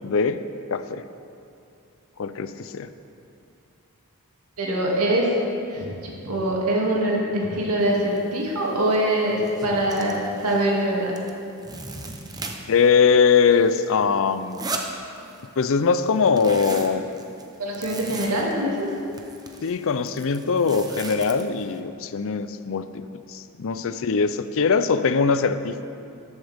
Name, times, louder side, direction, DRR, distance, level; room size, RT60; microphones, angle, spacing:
voice 1, 0.0-0.4 0.7-1.1 2.2-2.9 12.7-14.7 15.6-17.1 19.6-23.0 23.3-25.8, left 5 dB, 60° left, 12 dB, 0.5 m, -21 dB
voice 2, 4.6-5.3 5.7-11.2 17.6-18.8, right 1 dB, 85° right, -3 dB, 2.4 m, -23 dB
sound 1, 8.2-8.3 8.6-9.0 9.3-10.8 11.1-12.9 13.2-15.6 15.9-21.8, right 3 dB, 15° right, 0.8 m, -37 dB
14.5 x 11.5 x 3.5 m, 2.6 s
head